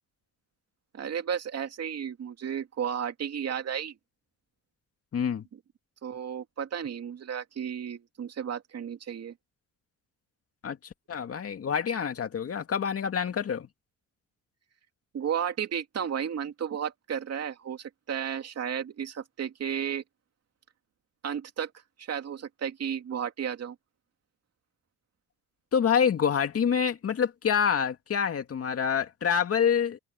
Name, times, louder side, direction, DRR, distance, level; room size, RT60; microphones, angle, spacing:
voice 1, 0.9-3.9 6.0-9.3 15.1-20.0 21.2-21.7 22.0-23.8, right 8 dB, 55° right, 2.6 m, -33 dB
voice 2, 5.1-5.5 10.6-10.8 11.1-13.7 25.7-30.0, left 7 dB, 50° left, 2.3 m, -26 dB
cardioid pair, 90°, 30 cm